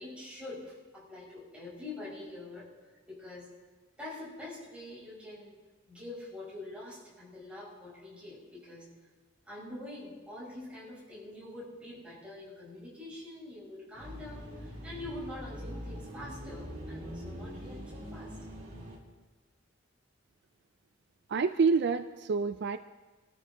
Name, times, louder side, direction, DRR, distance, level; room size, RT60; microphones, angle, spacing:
voice 1, 0.0-2.7 3.1-3.5 4.0-5.5 5.9-8.9 9.5-18.4, left 2 dB, 5° right, -7 dB, 6.3 m, -45 dB
sound 1, 13.9-19.0, equal, 40° right, 2.9 m, -43 dB
voice 2, 21.3-22.8, right 5 dB, 55° right, 10 dB, 0.4 m, -27 dB
26.0 x 13.5 x 3.0 m, 1.3 s
head